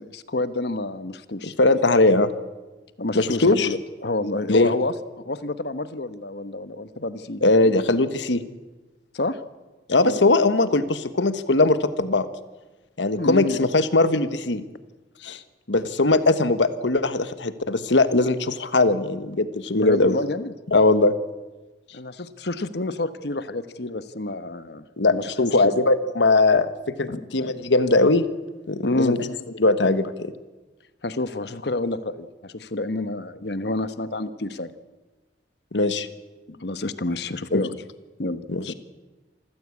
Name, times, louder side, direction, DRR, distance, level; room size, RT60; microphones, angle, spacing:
voice 1, 0.0-1.5 3.0-7.4 9.1-9.4 10.0-10.2 13.2-13.6 19.7-20.5 21.9-24.8 25.1-25.7 27.1-27.3 28.8-29.2 31.0-34.7 36.5-37.8 38.2-38.7, left 2 dB, 65° left, 12 dB, 1.1 m, -29 dB
voice 2, 1.6-2.3 3.1-3.7 4.5-4.7 7.4-8.4 9.9-12.3 13.0-14.6 15.2-15.4 15.7-20.1 20.7-21.1 25.0-25.1 25.5-26.7 27.0-28.3 28.7-29.2 29.6-30.3 35.7-36.1 37.5-37.6 38.5-38.6, left 2 dB, 85° left, 12 dB, 1.3 m, -20 dB
26.0 x 14.5 x 8.5 m, 1.2 s
head